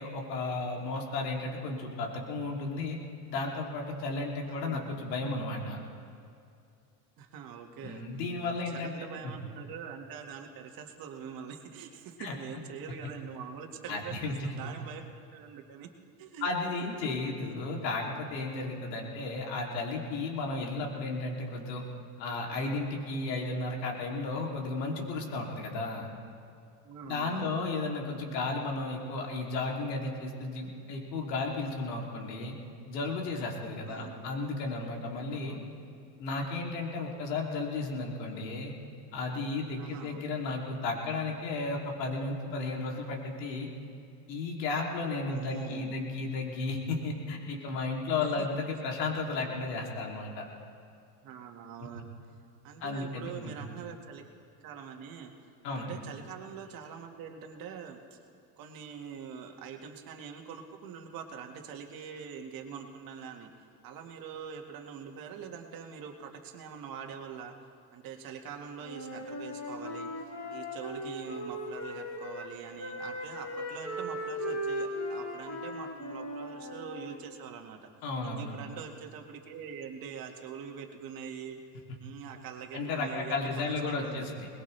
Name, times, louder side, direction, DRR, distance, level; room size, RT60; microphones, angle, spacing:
voice 1, 0.0-3.0 3.3-5.8 7.8-8.9 9.2-9.4 12.2-12.3 13.0-13.1 13.9-14.5 16.4-21.8 22.2-26.1 27.0-32.6 32.9-35.6 36.2-38.7 39.1-43.7 44.3-50.5 52.8-53.6 55.6-55.9 78.0-78.5 82.7-84.5, left 3 dB, 80° left, 0 dB, 3.0 m, -34 dB
voice 2, 4.5-5.0 7.2-8.0 8.4-15.9 16.2-16.5 26.8-27.7 33.9-34.4 35.3-35.7 39.8-40.4 45.2-46.0 49.3-49.6 51.2-52.1 52.6-54.2 54.6-55.3 55.7-58.2 58.6-63.5 63.8-67.5 67.9-70.1 70.5-77.8 78.2-81.6 82.0-84.4, right 7 dB, 45° right, 3 dB, 1.9 m, -44 dB
Wind instrument woodwind instrument, 68.8-72.5 72.8-77.2, equal, 40° left, 4.1 m, -38 dB
21.5 x 20.0 x 3.3 m, 2.5 s
supercardioid pair, 120°, 50 cm